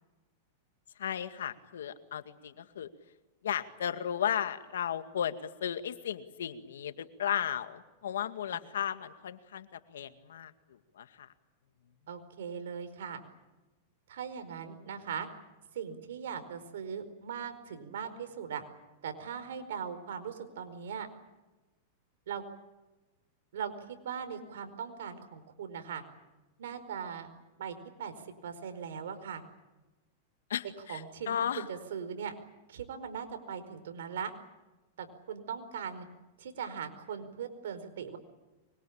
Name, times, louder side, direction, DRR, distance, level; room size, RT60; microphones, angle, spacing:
voice 1, 1.0-2.9 3.4-10.5 11.0-11.3 30.5-31.7, left 9 dB, 90° left, 9 dB, 2.1 m, -35 dB
voice 2, 12.1-13.2 14.1-15.3 15.7-18.6 19.0-21.1 22.3-22.4 23.5-26.0 26.6-27.3 27.6-29.4 30.9-32.3 32.7-34.3 35.0-36.1 36.4-38.2, right 7 dB, 80° right, 8 dB, 4.8 m, -39 dB
24.5 x 23.5 x 8.8 m, 1.1 s
supercardioid pair, 135°, 0 cm